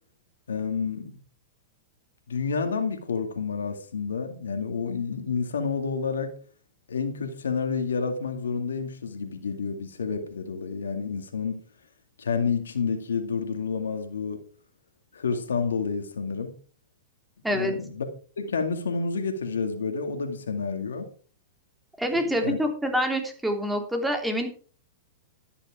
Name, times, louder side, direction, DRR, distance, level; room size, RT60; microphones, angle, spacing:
voice 1, 0.5-1.2 2.3-6.3 6.9-11.6 12.2-14.4 15.1-16.5 17.5-18.1 18.4-21.1 22.1-22.6, left 5 dB, 90° left, 2.1 m, -29 dB
voice 2, 22.0-24.5, equal, 5° right, 3.1 m, -26 dB
11.5 x 10.0 x 4.8 m
hypercardioid pair, 120°, 0 cm